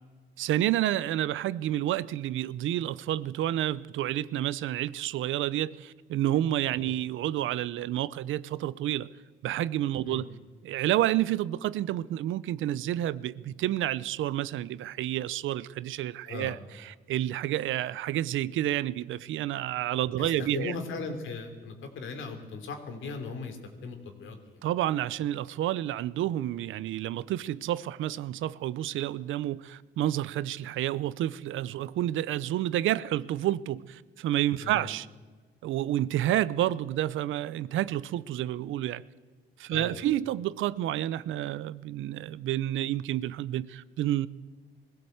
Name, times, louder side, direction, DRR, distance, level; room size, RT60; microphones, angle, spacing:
voice 1, 0.4-9.1 9.4-10.3 10.6-20.7 24.6-35.1 35.6-39.0 39.6-44.3, right 13 dB, 80° right, 18 dB, 0.7 m, -29 dB
voice 2, 16.3-16.6 20.2-23.6 23.8-24.6 34.6-34.9 39.7-40.0, left 4 dB, 80° left, 6 dB, 3.2 m, -38 dB
20.5 x 16.0 x 7.9 m, 1.4 s
cardioid pair, 90°, 20 cm